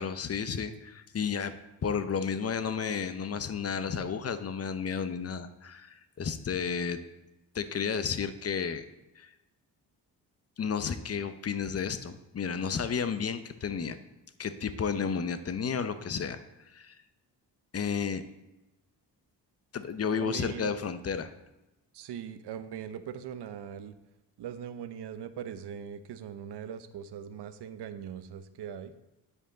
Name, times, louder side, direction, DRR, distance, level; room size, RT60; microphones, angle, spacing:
voice 1, 0.0-1.5 1.8-7.0 7.5-8.8 9.2-9.3 10.6-14.0 14.4-16.4 16.7-17.0 17.7-18.2 19.7-21.3, left 6 dB, 35° left, 11 dB, 0.7 m, -32 dB
voice 2, 20.2-20.7 21.9-23.9 24.4-28.9, right 8 dB, 65° right, 11 dB, 0.8 m, -40 dB
9.8 x 5.1 x 3.9 m, 0.97 s
supercardioid pair, 60°, 43 cm